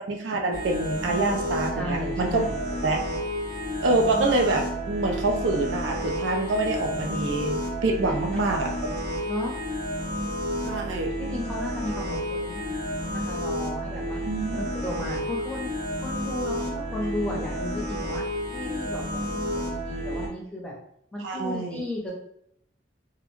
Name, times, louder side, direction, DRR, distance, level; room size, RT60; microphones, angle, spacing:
voice 1, 0.0-2.4 2.8-3.0 3.8-7.6 7.8-8.9 10.6-11.2 14.3-14.6 21.2-21.8, right 2 dB, 85° right, 2 dB, 0.4 m, -26 dB
sound 1, 0.5-20.3, equal, 55° right, 0.9 m, -31 dB
voice 2, 1.7-2.6 8.3-8.4 9.3-9.6 11.3-14.2 14.5-15.7 16.0-18.2 18.5-20.7 21.1-22.1, left 1 dB, 5° left, -3 dB, 0.5 m, -34 dB
2.3 x 2.1 x 3.0 m, 0.72 s
head